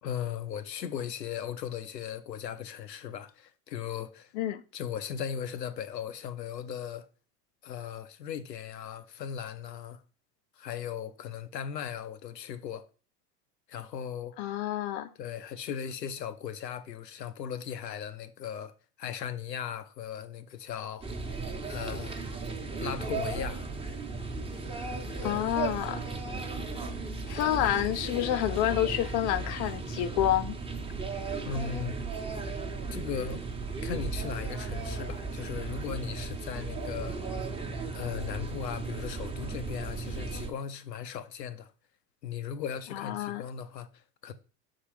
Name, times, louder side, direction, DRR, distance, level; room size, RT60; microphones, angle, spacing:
voice 1, 0.0-4.3 4.7-7.1 7.6-10.0 10.6-12.8 13.7-14.4 15.2-18.7 19.0-21.1 21.7-22.2 22.8-23.7 25.2-25.4 31.4-32.0 32.9-33.5 33.8-37.3 37.9-41.7 42.2-44.3, left 8 dB, 85° left, 0.8 m, -37 dB
voice 2, 14.4-15.1 25.2-26.0 27.3-30.6 42.9-43.5, left 12 dB, 45° left, 0.5 m, -29 dB
sound 1, 21.0-40.5, right 3 dB, 10° right, 1.0 m, -35 dB
5.7 x 3.8 x 4.9 m
figure-of-eight pair, 80°, 49 cm